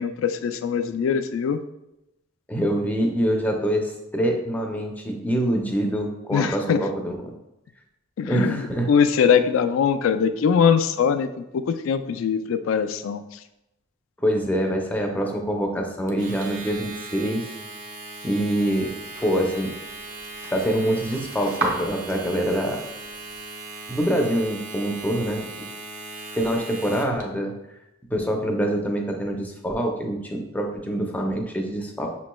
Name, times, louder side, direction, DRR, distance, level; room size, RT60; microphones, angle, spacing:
voice 1, 0.0-1.6 6.3-6.8 8.2-13.2, left 7 dB, 80° left, 10 dB, 0.3 m, -22 dB
voice 2, 2.5-7.2 8.3-8.9 14.2-17.4 18.2-18.9 19.2-19.7 20.5-22.8 23.9-25.7 26.3-27.5 28.1-32.1, right 1 dB, 10° left, 1 dB, 0.5 m, -25 dB
Domestic sounds home sounds, 16.1-27.2, right 2 dB, 40° right, 0.6 m, -38 dB
sound 1, 18.3-23.4, right 2 dB, 55° right, 0.9 m, -35 dB
6.0 x 3.0 x 2.2 m, 0.90 s
head